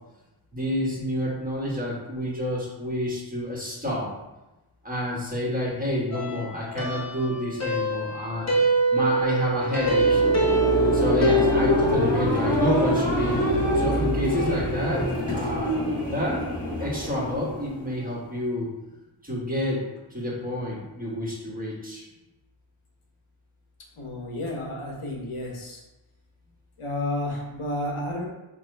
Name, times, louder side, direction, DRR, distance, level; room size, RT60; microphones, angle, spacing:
voice 1, 0.5-4.1 4.8-8.5 8.9-10.2 10.9-13.4 13.7-16.4 16.8-18.7 19.2-19.8 20.1-22.1, equal, 15° right, -4 dB, 1.4 m, -29 dB
sound 1, 6.1-12.3, right 2 dB, 30° left, 1.1 m, -25 dB
sound 2, 9.5-18.1, equal, 15° left, 1.5 m, -25 dB
voice 2, 24.0-25.8 26.8-28.3, left 1 dB, 85° left, 0 dB, 1.1 m, -31 dB
5.1 x 3.0 x 3.3 m, 1.0 s
wide cardioid pair, 60°, 49 cm